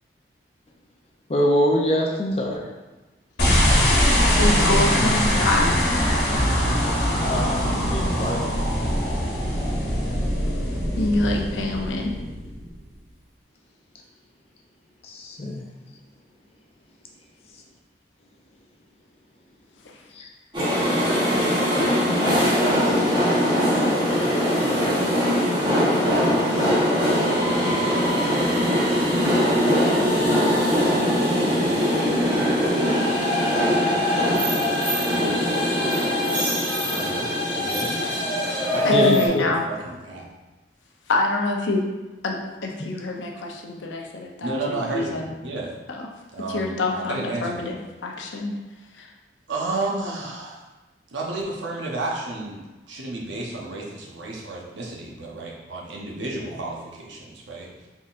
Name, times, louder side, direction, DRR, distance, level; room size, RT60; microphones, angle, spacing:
voice 1, 1.3-2.7 7.2-8.5 15.0-15.6 20.1-20.3 38.9-39.4, left 1 dB, 35° left, 1 dB, 0.5 m, -24 dB
sound 1, 3.4-12.8, equal, 60° left, 1.1 m, -22 dB
voice 2, 4.4-5.7 7.7-7.9 8.2-8.3 11.0-12.2 23.4-23.6 38.8-39.6 41.1-41.8 42.2-45.3 45.9-46.1 46.5-47.8 48.0-48.5 49.0-49.1, left 2 dB, 90° left, 1 dB, 0.6 m, -26 dB
sound 2, 20.5-39.3, equal, 25° right, 1.0 m, -21 dB
voice 3, 36.8-38.0 38.7-40.3 44.4-45.7 46.3-47.7 49.5-50.6 51.1-57.7, right 2 dB, 90° right, -3 dB, 0.8 m, -32 dB
4.2 x 3.7 x 2.5 m, 1.1 s
head